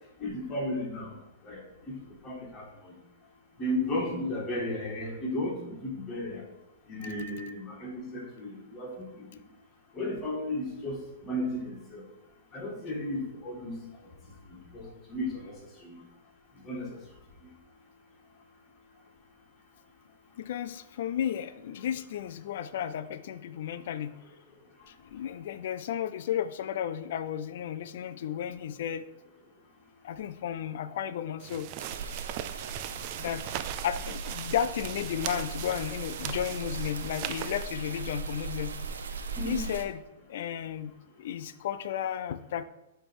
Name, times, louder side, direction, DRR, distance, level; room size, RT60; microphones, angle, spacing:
voice 1, 0.2-1.1 1.4-1.6 1.9-2.0 2.2-3.0 3.6-6.4 6.9-9.4 9.9-12.0 12.5-13.8 14.5-15.5 15.8-16.0 16.6-17.0 39.4-39.6, left 1 dB, 25° left, -2 dB, 2.1 m, -34 dB
voice 2, 20.4-24.2 24.9-29.0 30.0-31.7 33.2-33.4 33.8-38.7 39.5-40.0 40.3-40.9 41.2-42.6, left 9 dB, 65° left, 13 dB, 0.4 m, -33 dB
sound 1, 31.4-37.7, right 13 dB, 45° right, 0.3 m, -39 dB
sound 2, 31.8-39.8, right 5 dB, 85° right, 0.7 m, -38 dB
7.3 x 3.4 x 4.7 m, 0.90 s
hypercardioid pair, 130°, 0 cm